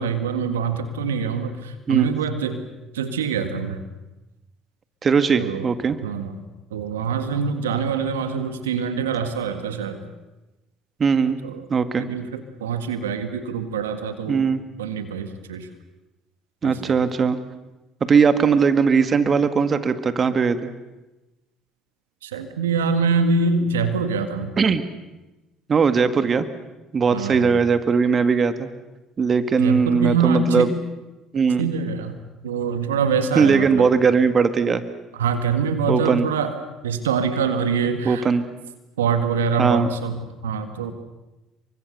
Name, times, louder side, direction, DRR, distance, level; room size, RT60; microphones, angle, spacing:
voice 1, 0.0-2.6 2.9-3.8 5.4-5.7 6.0-6.4 6.7-10.0 11.4-11.7 12.0-14.5 14.8-15.7 16.6-16.9 22.2-24.5 27.1-27.5 29.6-30.7 31.6-33.9 35.1-36.5 36.8-38.3 39.0-40.9, right 5 dB, 85° right, 8 dB, 1.8 m, -24 dB
voice 2, 5.0-6.0 11.0-11.4 11.7-12.1 14.3-14.6 16.6-17.4 18.0-20.7 24.6-24.8 25.7-26.5 26.9-28.7 29.2-30.7 31.3-31.7 33.4-34.8 35.9-36.3 38.1-38.4 39.6-39.9, right 5 dB, 35° right, 10 dB, 1.9 m, -19 dB
28.5 x 24.0 x 6.7 m, 1.0 s
hypercardioid pair, 60°, 0 cm